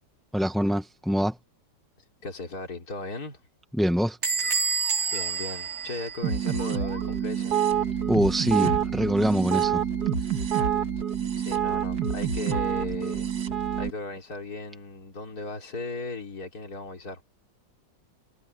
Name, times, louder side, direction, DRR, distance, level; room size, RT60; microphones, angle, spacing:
voice 1, 0.3-1.4 3.7-4.2 8.1-9.8, equal, ahead, 0.6 m, -24 dB
voice 2, 2.2-3.4 5.1-7.6 11.4-17.2, left 3 dB, 50° left, 4.4 m, -37 dB
Bell / Squeak, 4.2-6.7, right 5 dB, 40° right, 2.2 m, -29 dB
sound 1, 6.2-13.9, right 8 dB, 55° right, 2.6 m, -27 dB
omnidirectional pair, 2.0 m